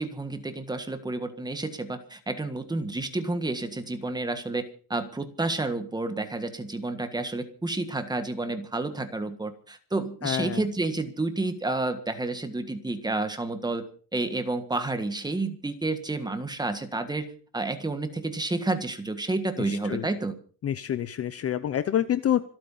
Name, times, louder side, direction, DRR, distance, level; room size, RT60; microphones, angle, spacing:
voice 1, 0.0-13.8 14.1-20.3, right 2 dB, 10° right, 8 dB, 1.6 m, -30 dB
voice 2, 10.2-10.6 19.6-20.0 20.6-22.4, left 10 dB, 35° left, 13 dB, 0.7 m, -27 dB
26.0 x 8.9 x 5.6 m, 0.42 s
cardioid pair, 170°, 41 cm